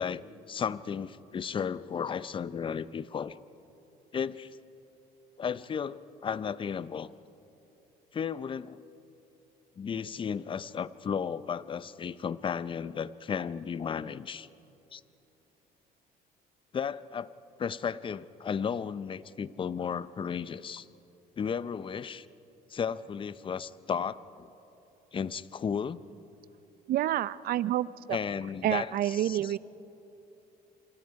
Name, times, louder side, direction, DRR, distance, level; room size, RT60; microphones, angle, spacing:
voice 1, 0.0-3.3 4.1-4.6 5.4-7.1 8.1-8.8 9.8-14.5 14.9-15.0 16.7-17.3 17.6-20.9 21.4-22.3 22.7-24.5 25.1-26.0 28.1-29.6, left 7 dB, 30° left, 16 dB, 0.6 m, -34 dB
voice 2, 26.9-28.2 28.6-29.6, right 13 dB, 60° right, 18 dB, 0.5 m, -28 dB
27.5 x 25.5 x 4.7 m, 2.9 s
cardioid pair, 110°, 17 cm